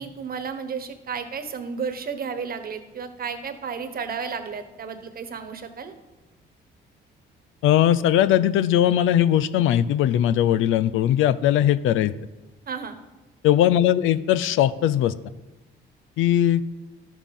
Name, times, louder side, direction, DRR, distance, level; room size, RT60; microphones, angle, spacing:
voice 1, 0.0-5.9 12.7-13.0, right 6 dB, 50° right, 8 dB, 1.2 m, -32 dB
voice 2, 7.6-12.1 13.4-15.1 16.2-16.6, left 11 dB, 85° left, 14 dB, 0.5 m, -19 dB
11.5 x 7.1 x 5.5 m, 1.1 s
cardioid pair, 90°, 20 cm